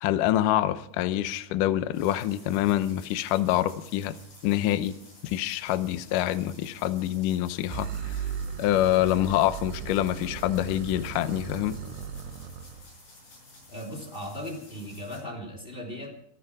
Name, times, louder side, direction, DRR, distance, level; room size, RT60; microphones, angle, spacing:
voice 1, 0.0-4.1 4.4-4.9 5.2-8.2 8.6-11.8, left 13 dB, 85° left, 12 dB, 1.8 m, -26 dB
sound 1, 1.9-15.2, left 2 dB, 50° left, 8.4 m, -52 dB
sound 2, 7.7-12.9, right 7 dB, 75° right, 3.4 m, -37 dB
voice 2, 13.7-16.2, equal, 15° left, 3 dB, 2.2 m, -37 dB
25.5 x 9.7 x 4.9 m, 0.68 s
omnidirectional pair, 5.0 m